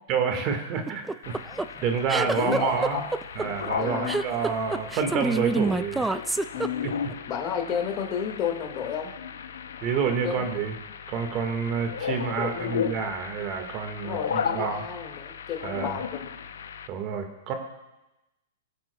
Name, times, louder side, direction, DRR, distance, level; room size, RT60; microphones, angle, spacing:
voice 1, 0.1-1.4 1.8-3.0 3.3-6.1 9.8-10.7 11.1-14.8 15.6-16.0 16.9-17.5, right 6 dB, 40° right, 5 dB, 1.7 m, -28 dB
sound 1, 0.9-7.1, right 3 dB, 10° right, 0.3 m, -27 dB
sound 2, 1.2-16.9, left 7 dB, 85° left, 0.6 m, -35 dB
voice 2, 2.3-3.1 3.8-4.2 6.5-6.9 7.3-9.1 10.2-10.6 12.4-13.1 14.0-16.3, left 7 dB, 35° left, 2 dB, 1.8 m, -32 dB
21.5 x 7.6 x 2.3 m, 0.99 s
hypercardioid pair, 135°, 0 cm